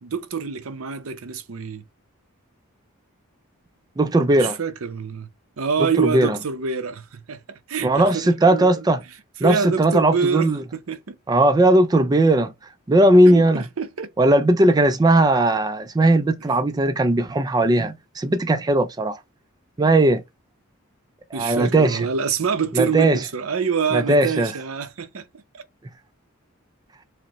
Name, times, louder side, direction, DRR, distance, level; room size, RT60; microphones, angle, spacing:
voice 1, 0.0-1.8 4.4-5.3 5.6-8.8 9.4-11.2 13.3-14.1 21.3-25.3 25.5-25.6, right 5 dB, 75° right, 0.6 m, -26 dB
voice 2, 4.0-4.6 6.0-6.4 7.8-9.0 9.4-10.6 11.3-12.5 12.9-13.6 14.2-19.2 19.8-20.2 21.3-22.1 22.7-23.2 23.9-24.5, right 1 dB, 20° right, 0.3 m, -18 dB
4.9 x 2.1 x 2.9 m
head